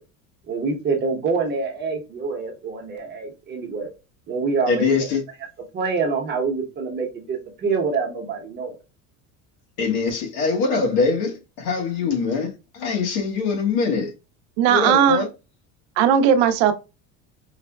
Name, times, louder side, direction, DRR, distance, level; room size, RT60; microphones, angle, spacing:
voice 1, 0.5-3.9 4.3-5.1 5.7-8.7, right 4 dB, 30° right, 0.9 m, -26 dB
voice 2, 4.7-5.2 9.8-14.1 14.7-15.3, left 4 dB, 70° left, 1.3 m, -23 dB
voice 3, 14.6-15.2 16.0-16.7, right 8 dB, 85° right, 0.7 m, -17 dB
4.8 x 2.2 x 2.2 m
cardioid pair, 160°, 36 cm